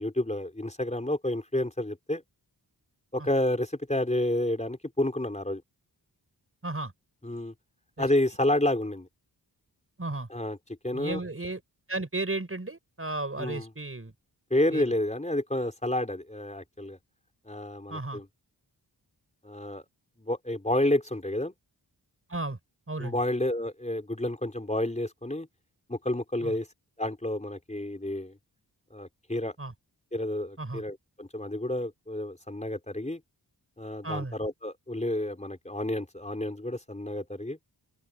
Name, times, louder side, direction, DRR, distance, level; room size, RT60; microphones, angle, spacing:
voice 1, 0.0-2.2 3.1-5.6 7.2-7.5 8.0-9.1 10.3-10.6 10.8-11.2 13.4-13.7 14.5-17.0 17.5-18.3 19.4-19.8 20.2-21.5 23.0-25.5 25.9-26.7 27.0-28.4 28.9-29.5 30.1-33.2 33.8-37.6, left 1 dB, 15° left, 4.4 m, -30 dB
voice 2, 10.9-11.6 11.9-14.1 14.7-14.8 17.9-18.2 22.3-22.6 22.9-23.1 26.4-26.5 29.6-29.7 30.6-30.8 34.0-34.3, right 2 dB, 30° right, 6.6 m, -34 dB
wide cardioid pair, 75°, 41 cm